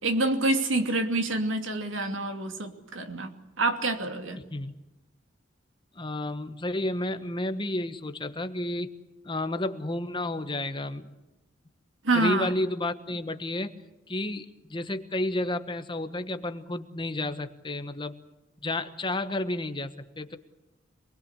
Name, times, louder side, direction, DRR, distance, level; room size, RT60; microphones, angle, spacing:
voice 1, 0.0-4.4 12.0-12.5, right 2 dB, 90° right, 6 dB, 2.7 m, -27 dB
voice 2, 4.4-4.7 5.9-8.9 9.2-11.1 12.1-13.7 14.1-18.1 18.6-20.4, left 1 dB, 25° left, 9 dB, 1.3 m, -31 dB
27.0 x 21.0 x 8.2 m, 0.98 s
head